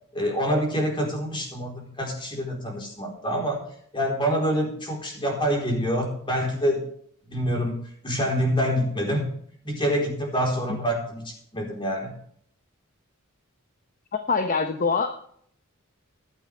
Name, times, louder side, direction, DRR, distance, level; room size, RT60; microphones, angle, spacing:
voice 1, 0.1-3.6 3.9-6.8 7.3-7.8 8.0-9.3 9.6-11.2 11.5-12.1, equal, 25° left, 0 dB, 4.2 m, -26 dB
voice 2, 14.3-15.2, left 4 dB, 40° left, 7 dB, 1.0 m, -24 dB
15.0 x 11.5 x 3.5 m, 0.62 s
head